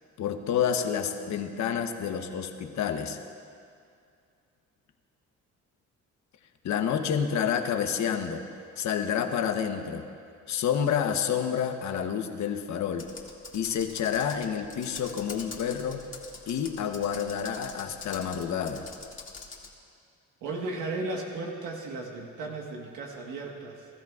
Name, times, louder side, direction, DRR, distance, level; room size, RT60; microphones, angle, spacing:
voice 1, 0.2-3.2 6.6-8.4 8.8-10.0 10.5-13.1 13.5-16.1 16.5-18.9, left 8 dB, 65° left, 6 dB, 1.0 m, -29 dB
Computer keyboard, 12.9-19.7, left 4 dB, 40° left, 1.9 m, -44 dB
voice 2, 20.4-23.9, right 2 dB, 90° right, 0 dB, 1.4 m, -35 dB
20.5 x 13.5 x 2.4 m, 2.3 s
cardioid pair, 90°, 30 cm